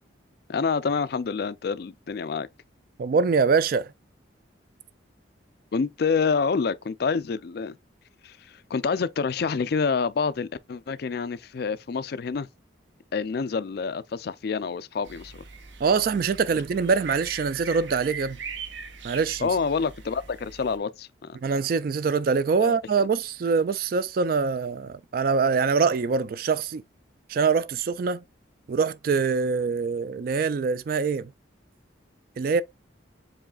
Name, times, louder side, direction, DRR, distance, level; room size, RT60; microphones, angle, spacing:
voice 1, 0.5-2.5 5.7-7.8 8.2-8.3 8.7-12.5 13.1-15.4 19.4-21.4 22.6-23.1, left 5 dB, 55° left, 0.4 m, -27 dB
voice 2, 3.0-3.9 15.8-18.4 19.0-19.5 21.4-26.8 27.3-28.2 28.7-31.3 32.4-32.6, right 5 dB, 50° right, 0.3 m, -24 dB
sound 1, 15.0-20.8, right 5 dB, 70° right, 0.9 m, -40 dB
7.1 x 3.1 x 2.3 m
head